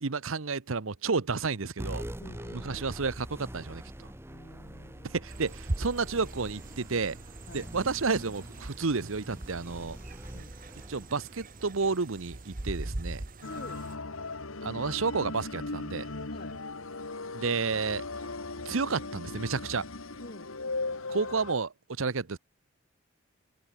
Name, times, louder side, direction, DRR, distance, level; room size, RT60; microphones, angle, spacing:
voice 1, 0.0-2.0 2.5-4.1 5.1-7.2 7.5-10.0 10.9-13.2 14.6-16.1 17.3-18.0 18.6-19.8 21.1-22.4, right 4 dB, 75° right, 0.9 m, -31 dB
sound 1, 1.8-12.6, right 1 dB, 10° right, 1.1 m, -44 dB
voice 2, 2.2-2.7 4.3-5.2 7.5-7.7 10.3-10.6 13.5-13.8 16.3-16.6 20.2-20.5, left 1 dB, 45° left, 3.1 m, -47 dB
sound 2, 5.3-13.9, right 1 dB, 40° right, 1.2 m, -41 dB
sound 3, 13.4-21.5, left 3 dB, 75° left, 1.8 m, -38 dB
head